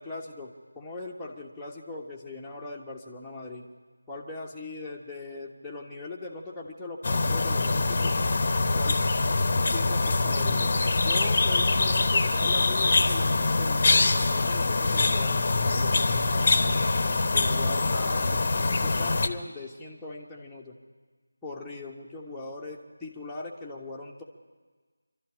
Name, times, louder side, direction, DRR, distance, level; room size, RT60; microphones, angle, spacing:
voice 1, 0.0-3.7 4.1-8.1 8.7-9.0 9.7-10.7 11.0-16.8 17.3-20.8 21.4-24.2, left 2 dB, 5° left, -7 dB, 1.3 m, -40 dB
sound 1, 7.0-19.3, left 3 dB, 35° left, 1.0 m, -24 dB
25.5 x 12.5 x 9.9 m, 1.4 s
figure-of-eight pair, 165°, 0 cm